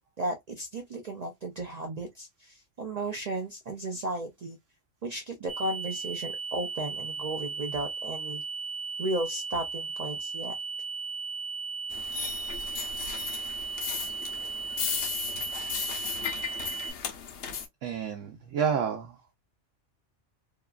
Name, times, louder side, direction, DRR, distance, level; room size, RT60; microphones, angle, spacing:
voice 1, 0.2-4.6 5.0-8.4 9.0-10.6, right 2 dB, 65° right, 0.4 m, -34 dB
sound 1, 5.5-16.9, right 5 dB, 40° right, 0.9 m, -36 dB
sound 2, 11.9-17.7, left 7 dB, 70° left, 0.9 m, -35 dB
voice 2, 17.8-19.3, right 7 dB, 80° right, 1.0 m, -30 dB
2.9 x 2.3 x 2.2 m
omnidirectional pair, 1.3 m